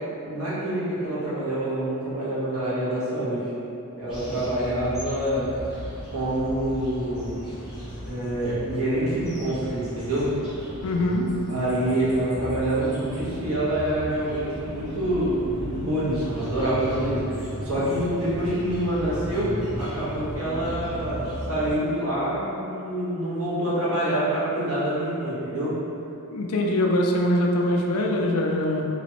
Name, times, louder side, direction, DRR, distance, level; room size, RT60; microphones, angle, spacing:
voice 1, 0.2-3.5 4.0-5.5 6.1-7.4 8.0-10.3 11.5-25.7, right 1 dB, 70° right, -10 dB, 1.3 m, -26 dB
sound 1, 4.1-21.7, equal, 5° right, 1.0 m, -36 dB
voice 2, 10.8-11.3 26.3-28.8, left 1 dB, 75° left, 0 dB, 0.4 m, -23 dB
3.0 x 3.0 x 2.9 m, 2.8 s
head